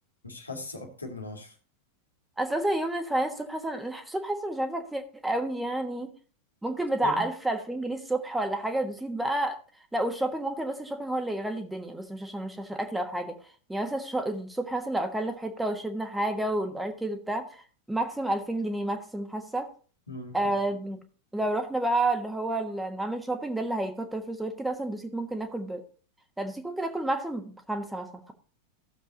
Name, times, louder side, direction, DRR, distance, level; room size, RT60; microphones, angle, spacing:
voice 1, 0.2-1.5 7.0-7.3 20.1-20.5, left 2 dB, 80° left, 1 dB, 2.3 m, -39 dB
voice 2, 2.4-6.1 6.6-9.6 9.9-13.4 13.7-19.7 20.3-21.0 21.3-25.8 26.4-28.3, right 1 dB, 5° right, 6 dB, 1.4 m, -30 dB
15.5 x 7.2 x 2.8 m, 0.40 s
figure-of-eight pair, 90°, 0 cm